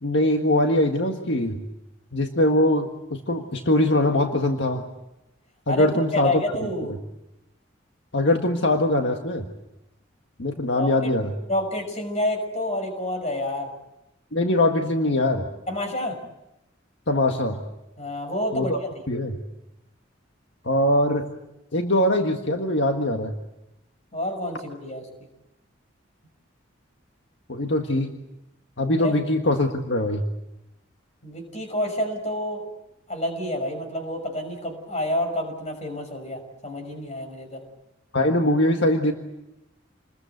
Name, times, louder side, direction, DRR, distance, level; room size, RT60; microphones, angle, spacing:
voice 1, 0.0-1.6 2.1-4.9 5.7-6.4 6.9-7.0 8.1-9.5 10.4-11.3 14.3-15.5 17.1-17.6 18.5-18.8 19.1-19.4 20.6-21.3 21.7-23.3 27.5-28.1 28.8-30.2 38.1-39.1, left 1 dB, 65° left, 4 dB, 1.7 m, -22 dB
voice 2, 5.7-6.9 10.8-11.1 11.5-13.7 15.7-16.2 18.0-18.8 24.1-25.0 29.0-29.2 31.2-32.6 33.1-37.6, left 1 dB, 35° left, 5 dB, 6.0 m, -28 dB
28.5 x 21.5 x 8.1 m, 0.91 s
head